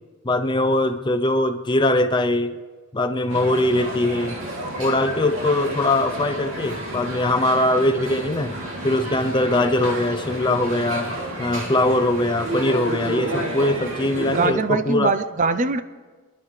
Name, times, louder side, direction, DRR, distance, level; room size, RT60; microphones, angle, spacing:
voice 1, 0.2-2.6 2.9-4.4 4.8-11.1 11.4-15.1, left 1 dB, 20° left, 9 dB, 0.5 m, -21 dB
Dive Bomber Kids Carnival Ride, 3.3-14.5, right 1 dB, 75° right, 2.5 m, -31 dB
voice 2, 14.3-15.8, right 4 dB, 35° right, 11 dB, 0.5 m, -22 dB
28.0 x 11.0 x 3.2 m, 1.4 s
head